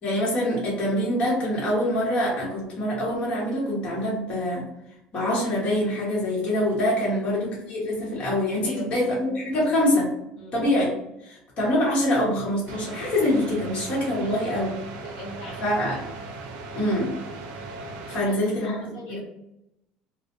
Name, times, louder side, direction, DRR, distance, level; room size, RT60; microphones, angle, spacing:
voice 1, 0.0-4.6 5.1-10.1 10.5-10.9 11.2-14.7 15.6-16.0 16.7-17.1 18.1-18.8 19.1-19.2, left 1 dB, 40° left, -5 dB, 1.1 m, -25 dB
voice 2, 8.6-9.7 10.3-10.6 14.2-14.7 15.0-16.0 18.2-19.2, left 1 dB, 80° left, -4 dB, 1.2 m, -40 dB
sound 1, 12.7-18.2, right 3 dB, 75° right, 0.5 m, -38 dB
2.2 x 2.1 x 2.9 m, 0.83 s
supercardioid pair, 105°, 3 cm